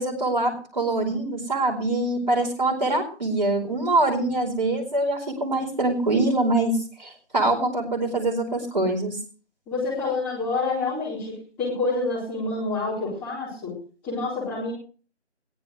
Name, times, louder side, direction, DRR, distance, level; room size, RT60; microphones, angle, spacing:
voice 1, 0.0-6.7 7.0-9.2, right 2 dB, 40° right, 1 dB, 4.7 m, -24 dB
voice 2, 9.7-13.7 14.0-14.7, left 3 dB, 5° left, -8 dB, 3.8 m, -27 dB
21.5 x 15.0 x 3.2 m, 0.39 s
figure-of-eight pair, 165°, 35 cm